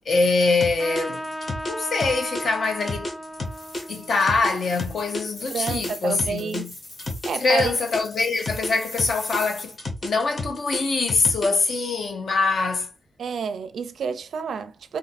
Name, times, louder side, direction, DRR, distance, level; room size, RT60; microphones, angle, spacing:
voice 1, 0.0-1.3 1.7-3.1 3.9-6.7 7.4-9.8 10.0-12.9, left 3 dB, 60° left, 0.8 m, -23 dB
sound 1, 0.6-5.2 5.7-8.7 9.0-11.7, left 2 dB, 45° left, 1.2 m, -31 dB
Trumpet, 0.8-5.8, equal, ahead, 0.3 m, -36 dB
sound 2, 3.4-9.8, left 2 dB, 80° left, 1.9 m, -42 dB
voice 2, 5.5-6.7 7.2-7.8 13.2-15.0, right 6 dB, 80° right, 0.4 m, -30 dB
2.7 x 2.6 x 4.1 m
wide cardioid pair, 155°, 0 cm